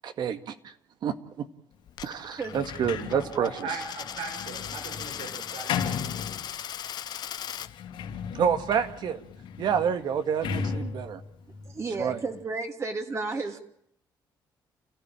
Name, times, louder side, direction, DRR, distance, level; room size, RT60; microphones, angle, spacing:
voice 1, 0.0-0.7 1.0-1.5 2.0-3.5 8.3-9.2 9.6-11.2 12.0-12.2, right 7 dB, 60° right, 9 dB, 2.0 m, -28 dB
Coin (dropping), 1.9-7.7, left 10 dB, 55° left, 1.0 m, -38 dB
Sliding door, 2.4-6.9 7.5-12.4, left 6 dB, 85° left, 3.7 m, -36 dB
voice 2, 3.1-6.0, right 4 dB, 85° right, 4 dB, 6.0 m, -38 dB
voice 3, 11.6-13.6, right 3 dB, 35° right, 5 dB, 3.1 m, -32 dB
30.0 x 15.0 x 9.0 m, 0.74 s
cardioid pair, 125°, 8 cm